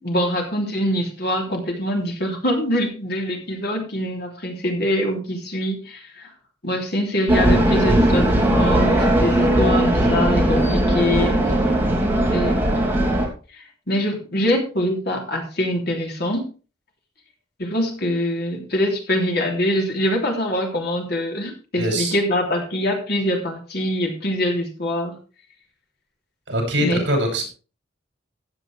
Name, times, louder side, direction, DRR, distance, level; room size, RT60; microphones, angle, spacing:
voice 1, 0.0-6.3 6.6-11.6 12.3-12.6 13.5-16.5 17.6-25.1 26.8-27.0, equal, 55° left, 1 dB, 3.3 m, -24 dB
sound 1, 7.3-13.3, right 1 dB, 10° right, 2.9 m, -18 dB
voice 2, 21.7-22.2 26.5-27.5, equal, 65° right, 1 dB, 6.6 m, -22 dB
15.0 x 8.9 x 3.4 m, 0.36 s
head